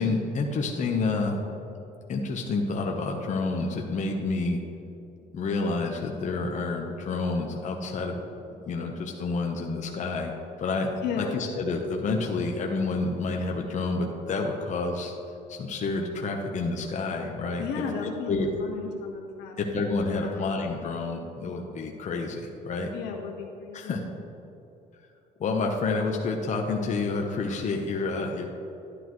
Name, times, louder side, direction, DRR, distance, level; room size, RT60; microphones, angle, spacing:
voice 1, 0.0-1.4 2.1-4.6 5.3-8.2 8.7-10.3 10.6-15.1 15.5-17.7 18.3-18.5 19.6-22.9 23.7-24.0 25.4-28.5, left 3 dB, 45° left, 1 dB, 1.0 m, -29 dB
voice 2, 11.0-11.4 17.6-18.3 18.6-19.6 20.2-20.5 22.9-24.0, left 6 dB, 85° left, 1 dB, 1.6 m, -34 dB
11.5 x 9.8 x 3.1 m, 2.9 s
cardioid pair, 110°, 17 cm